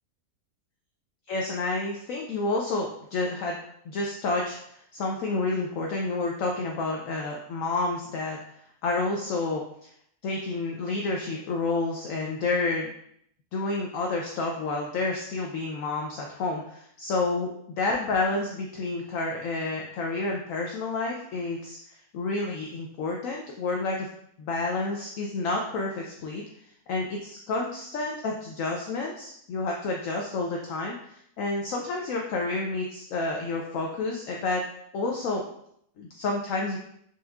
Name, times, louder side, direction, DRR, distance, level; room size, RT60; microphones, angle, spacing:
voice 1, 1.3-3.6 3.8-8.4 8.8-9.6 10.2-12.9 13.5-17.5 17.8-21.8 22.1-24.1 24.4-26.4 26.9-34.6 34.9-35.4 36.0-36.8, left 3 dB, 70° left, 0 dB, 0.9 m, -29 dB
6.1 x 3.1 x 2.3 m, 0.70 s
omnidirectional pair, 1.6 m